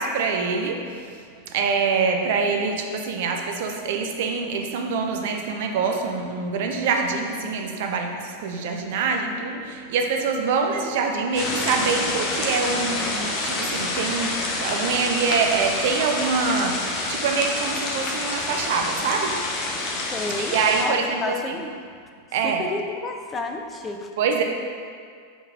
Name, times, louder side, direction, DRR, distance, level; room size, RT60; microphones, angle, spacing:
voice 1, 0.0-19.8 20.4-21.5 22.3-22.6 24.2-24.4, right 5 dB, 55° right, 3 dB, 0.6 m, -25 dB
sound 1, 11.3-20.8, left 2 dB, 35° left, 0.9 m, -27 dB
voice 2, 20.1-21.7 22.4-24.1, left 3 dB, 20° left, 4 dB, 0.5 m, -31 dB
5.0 x 3.9 x 5.0 m, 2.1 s
figure-of-eight pair, 90°, 0 cm